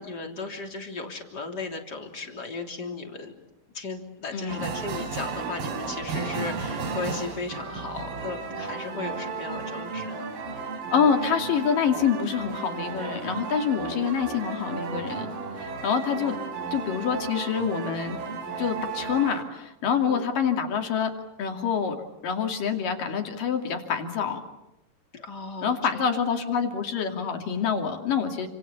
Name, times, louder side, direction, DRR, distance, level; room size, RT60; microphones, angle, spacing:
voice 1, 0.0-3.4 3.7-10.3 16.0-16.4 20.0-20.2 25.1-26.1, left 3 dB, 25° left, 3 dB, 3.3 m, -36 dB
voice 2, 4.3-4.7 10.9-15.3 15.6-16.4 16.7-18.2 18.6-21.1 21.4-22.0 22.2-24.4 25.6-28.5, left 7 dB, 60° left, 4 dB, 4.1 m, -26 dB
sound 1, 4.5-19.4, right 4 dB, 65° right, 4.9 m, -34 dB
29.5 x 27.0 x 7.1 m, 0.90 s
omnidirectional pair, 4.6 m